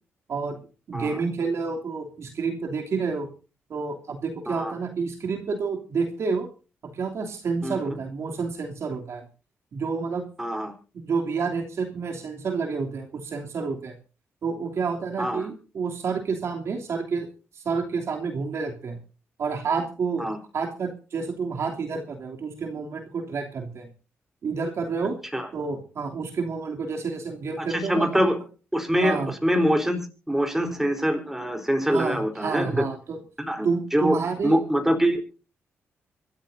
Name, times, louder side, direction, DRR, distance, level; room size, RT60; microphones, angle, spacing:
voice 1, 0.3-0.6 0.9-3.3 3.7-6.5 6.8-9.3 9.7-10.2 10.9-13.9 14.4-17.3 17.5-19.0 19.4-23.9 24.4-25.2 25.5-28.2 29.0-29.3 31.9-33.2 33.6-34.6, right 5 dB, 60° right, 1 dB, 3.1 m, -29 dB
voice 2, 10.4-10.7 15.2-15.5 20.2-20.4 25.3-25.5 27.6-28.4 28.7-32.8 33.4-35.2, equal, 5° right, 4 dB, 4.1 m, -24 dB
25.0 x 13.0 x 2.8 m, 0.35 s
cardioid pair, 90°, 5 cm